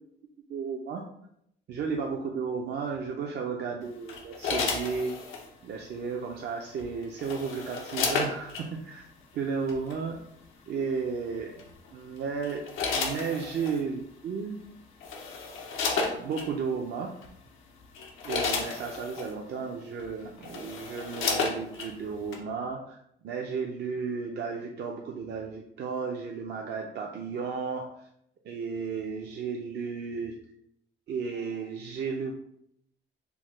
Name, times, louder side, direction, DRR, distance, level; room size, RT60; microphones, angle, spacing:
voice 1, 0.5-1.0 1.7-5.1 5.6-9.0 9.3-10.2 10.7-12.6 12.9-14.6 16.1-17.1 18.2-23.0 23.2-28.1 28.4-30.4 31.1-32.3, right 5 dB, 60° right, 0 dB, 0.4 m, -33 dB
sound 1, 4.1-5.5 6.8-8.7 9.7-9.9 11.6-11.9 12.4-13.8 14.6-14.7 15.0-16.5 17.2-17.4 17.8-19.3 20.0-20.1 20.4-21.9 22.3-22.4, left 4 dB, 90° left, 0.6 m, -32 dB
3.5 x 2.1 x 3.0 m, 0.74 s
cardioid pair, 90°, 20 cm